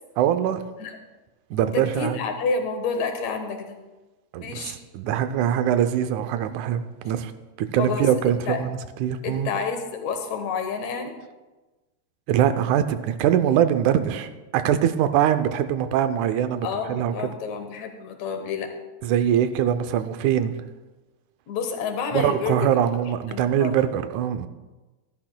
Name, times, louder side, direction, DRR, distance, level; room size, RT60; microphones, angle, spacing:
voice 1, 0.2-0.6 1.5-2.2 4.3-7.3 7.6-9.5 12.3-17.1 19.0-20.5 22.1-24.5, right 10 dB, 85° right, 10 dB, 2.1 m, -23 dB
voice 2, 1.6-3.8 4.4-4.8 7.8-8.6 9.2-11.1 16.6-18.7 21.5-22.7 23.3-23.8, left 5 dB, 70° left, 6 dB, 2.3 m, -29 dB
13.5 x 11.5 x 2.2 m, 1.2 s
omnidirectional pair, 3.3 m